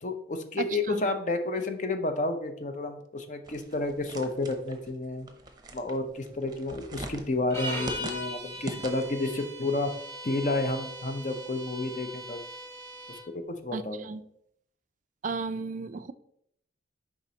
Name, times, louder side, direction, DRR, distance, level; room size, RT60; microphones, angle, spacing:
voice 1, 0.0-5.3 5.7-9.9 10.2-12.4 13.1-14.1, left 2 dB, 40° left, 7 dB, 0.6 m, -31 dB
voice 2, 0.6-1.0 13.7-14.2 15.2-16.1, right 4 dB, 40° right, 13 dB, 0.3 m, -34 dB
sound 1, 3.5-9.3, right 2 dB, 20° right, 0.7 m, -42 dB
sound 2, 7.5-13.3, right 1 dB, 15° left, 1.4 m, -39 dB
7.2 x 5.0 x 2.8 m, 0.72 s
head